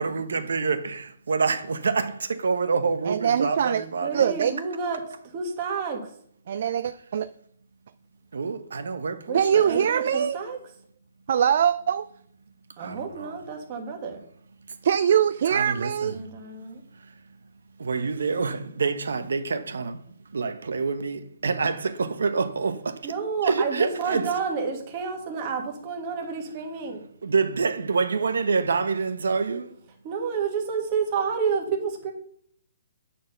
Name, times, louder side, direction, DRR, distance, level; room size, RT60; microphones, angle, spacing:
voice 1, 0.0-4.2 8.3-9.8 12.8-13.4 15.5-16.2 17.0-17.1 17.8-20.0 20.3-23.1 23.4-24.3 27.2-29.7, right 4 dB, 85° right, 1.0 m, -27 dB
voice 2, 3.1-3.8 4.1-4.5 6.5-7.3 9.3-10.4 11.3-12.1 14.8-16.2, right 8 dB, 50° right, 0.4 m, -22 dB
voice 3, 4.0-5.0 5.3-6.0 9.3-9.4 9.6-10.6 12.8-14.2 16.1-16.8 23.0-27.0 30.0-32.1, right 5 dB, 25° right, 1.6 m, -30 dB
9.4 x 4.3 x 6.6 m
hypercardioid pair, 170°, 0 cm